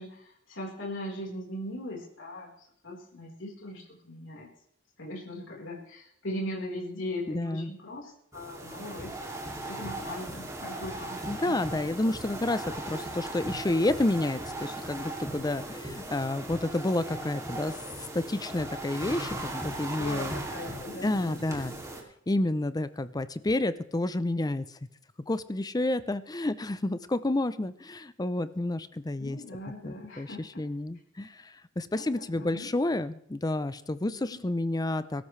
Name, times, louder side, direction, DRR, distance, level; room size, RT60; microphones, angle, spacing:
voice 1, 0.0-4.5 5.0-9.4 9.7-11.8 20.0-21.7 29.2-30.6 31.9-32.8 34.0-34.4, left 1 dB, 75° left, -2 dB, 4.2 m, -40 dB
voice 2, 7.3-7.7 11.3-17.8 18.1-20.4 21.0-21.7 22.3-24.6 25.3-29.4 29.8-35.2, left 2 dB, 20° left, 14 dB, 0.6 m, -30 dB
sound 1, 8.3-22.0, right 1 dB, 15° right, 2.6 m, -38 dB
22.5 x 13.0 x 3.3 m, 0.70 s
head